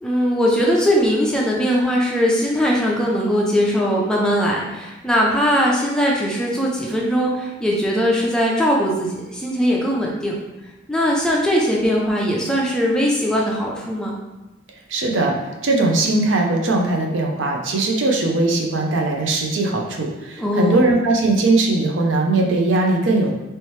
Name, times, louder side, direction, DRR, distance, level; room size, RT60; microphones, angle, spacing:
voice 1, 0.0-10.3 10.9-14.2 20.4-20.9, equal, 5° left, -3 dB, 0.5 m, -20 dB
voice 2, 14.9-15.3 15.6-23.3, right 2 dB, 80° right, 1 dB, 0.5 m, -19 dB
3.2 x 3.0 x 3.1 m, 1.0 s
head